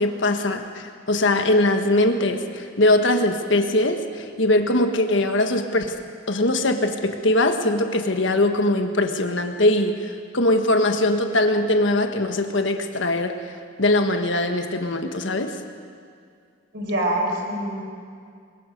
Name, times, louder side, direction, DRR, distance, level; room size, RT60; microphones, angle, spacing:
voice 1, 0.0-5.9 6.3-13.4 13.8-15.5, left 1 dB, 65° left, 6 dB, 1.4 m, -21 dB
voice 2, 16.7-17.8, right 1 dB, 55° right, 1 dB, 4.4 m, -25 dB
23.0 x 21.5 x 5.3 m, 2.2 s
head